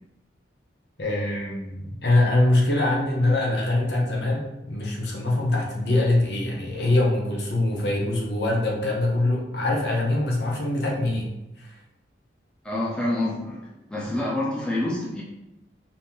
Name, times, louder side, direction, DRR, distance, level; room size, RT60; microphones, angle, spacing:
voice 1, 1.0-11.3 11.6-11.7, left 2 dB, 65° left, -2 dB, 0.9 m, -23 dB
voice 2, 12.6-15.2, left 1 dB, 5° left, -6 dB, 0.8 m, -27 dB
4.3 x 2.8 x 3.6 m, 0.94 s
head